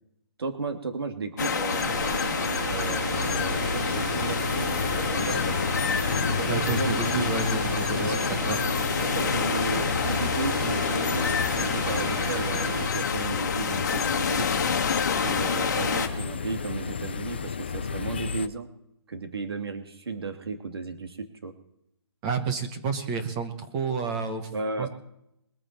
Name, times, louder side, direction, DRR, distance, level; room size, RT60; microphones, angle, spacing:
voice 1, 0.4-1.9 2.7-5.6 6.3-7.4 8.0-8.2 8.9-14.5 15.2-18.7 19.1-21.5 24.5-24.9, right 4 dB, 65° right, 6 dB, 2.6 m, -34 dB
sound 1, 1.4-16.1, left 6 dB, 40° left, 1.5 m, -29 dB
sound 2, 1.7-12.9, right 2 dB, 45° right, 3.8 m, -33 dB
sound 3, 3.1-18.5, left 6 dB, 25° left, 0.4 m, -32 dB
voice 2, 6.5-8.6 22.2-24.5 24.8-24.9, right 5 dB, 15° right, 7 dB, 1.0 m, -30 dB
22.5 x 8.7 x 4.4 m, 0.79 s
hypercardioid pair, 175°, 14 cm